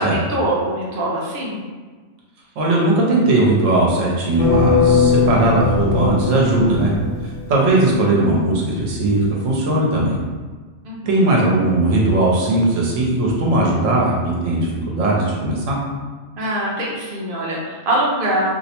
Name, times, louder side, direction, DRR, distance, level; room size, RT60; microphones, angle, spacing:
voice 1, 0.0-1.6 10.8-11.2 16.4-18.5, right 1 dB, 55° right, -4 dB, 0.6 m, -23 dB
voice 2, 2.6-6.9 7.2-10.2 11.1-15.8, right 2 dB, 75° right, -3 dB, 1.0 m, -18 dB
sound 1, 4.4-7.4, left 5 dB, 55° left, 0.5 m, -19 dB
2.6 x 2.0 x 2.8 m, 1.4 s
omnidirectional pair, 1.3 m